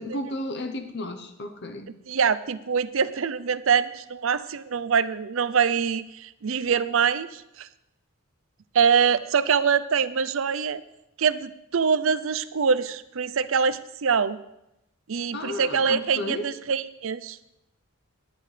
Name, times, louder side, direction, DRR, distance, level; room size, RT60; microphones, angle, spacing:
voice 1, 0.0-1.9 15.3-16.5, left 1 dB, 55° left, 7 dB, 0.9 m, -33 dB
voice 2, 2.1-7.7 8.7-10.8 11.2-14.4 15.1-17.4, right 6 dB, 70° right, 14 dB, 0.6 m, -24 dB
18.0 x 10.5 x 3.3 m, 0.87 s
head